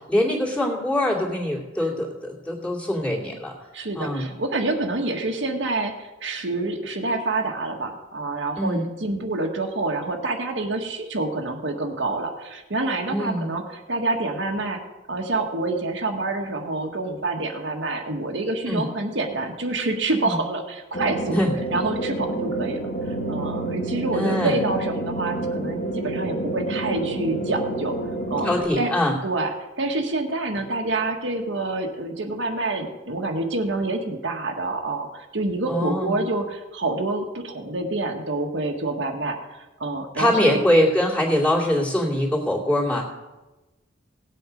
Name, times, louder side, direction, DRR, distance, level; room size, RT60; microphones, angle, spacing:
voice 1, 0.1-3.5 4.0-4.3 8.6-8.9 13.1-13.5 18.7-18.8 20.2-20.4 21.3-21.5 24.1-24.5 28.4-29.2 35.7-36.2 40.2-43.0, left 1 dB, 5° left, -4 dB, 2.6 m, -23 dB
voice 2, 3.7-13.6 13.9-14.8 15.1-21.4 21.7-22.8 23.0-27.9 28.3-28.5 28.8-28.9 29.2-29.5 29.8-39.4 39.8-40.6, right 2 dB, 80° right, 2 dB, 1.6 m, -27 dB
sound 1, 20.9-28.6, right 1 dB, 50° left, 1.7 m, -28 dB
18.0 x 8.0 x 5.2 m, 1.1 s
head